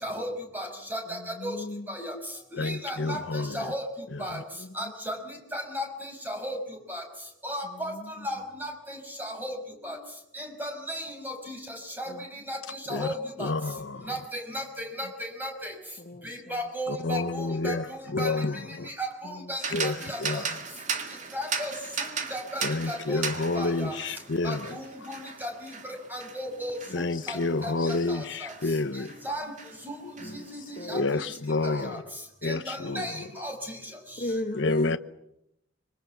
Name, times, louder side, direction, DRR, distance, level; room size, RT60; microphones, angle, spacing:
voice 1, 0.0-1.6 1.9-2.1 2.6-3.2 3.5-3.8 4.2-4.4 4.7-5.1 5.5-6.6 6.9-7.0 7.4-7.9 8.2-9.6 9.8-10.0 10.3-12.1 12.5-12.6 12.9-13.5 14.1-15.1 15.4-15.7 16.2-17.7 18.2-18.3 18.8-20.4 21.3-21.7 22.3-23.2 23.5-23.9 24.4-25.5 26.1-26.7 27.3-27.4 27.6-28.5 29.2-29.5 29.9-30.0 30.3-31.0 31.6-32.0 32.4-33.5, equal, 10° right, 5.9 m, -35 dB
voice 2, 1.1-1.9 4.6-4.7 7.9-8.3 12.1-12.2 16.0-16.3 19.2-20.1 20.3-20.4 26.9-27.9 30.2-30.5 30.8-31.1 31.8-31.9 34.2-35.0, left 1 dB, 45° left, 1.2 m, -37 dB
voice 3, 2.6-3.7 4.1-4.4 12.9-13.1 13.4-14.1 16.9-17.9 18.1-18.9 19.7-20.5 22.6-25.1 26.9-29.1 30.9-32.0 32.4-33.4 34.5-35.0, left 3 dB, 70° left, 0.9 m, -29 dB
sound 1, 19.6-29.3 29.6-30.8, right 5 dB, 40° right, 2.0 m, -37 dB
25.5 x 23.5 x 7.2 m
head